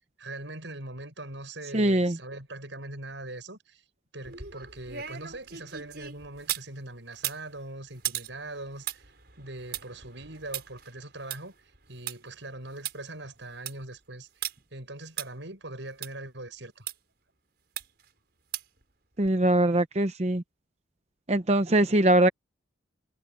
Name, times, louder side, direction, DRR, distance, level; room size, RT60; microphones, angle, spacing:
voice 1, 0.2-3.8 4.1-9.0 9.4-11.5 11.9-14.5 14.7-16.9, right 2 dB, 70° right, 7.1 m, -41 dB
voice 2, 1.7-2.2 19.2-20.4 21.3-22.3, right 1 dB, 35° right, 0.8 m, -22 dB
sound 1, 4.2-6.7 7.1-12.2 12.5-12.6 12.8-12.9 13.4-13.8 14.4-14.5 15.2-15.3 16.0-16.1 16.9-17.0 17.8-18.1 18.5-18.8 19.2-19.3, right 11 dB, 55° right, 5.7 m, -37 dB
head